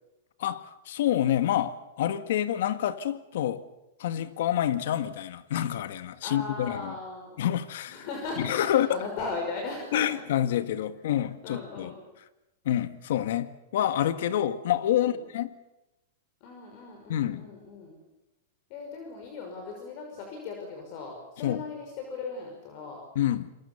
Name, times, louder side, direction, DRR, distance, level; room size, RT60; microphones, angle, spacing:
voice 1, 0.4-3.6 4.0-6.9 7.4-8.1 8.4-9.0 9.9-11.9 12.7-15.5 17.1-17.5 21.4-21.6 23.2-23.5, left 11 dB, 65° left, 1.7 m, -27 dB
voice 2, 6.2-7.4 7.9-10.0 11.4-12.0 15.0-15.2 16.4-18.0 18.7-23.0, left 4 dB, 45° left, 5.9 m, -38 dB
27.0 x 23.0 x 7.1 m
supercardioid pair, 150°, 0 cm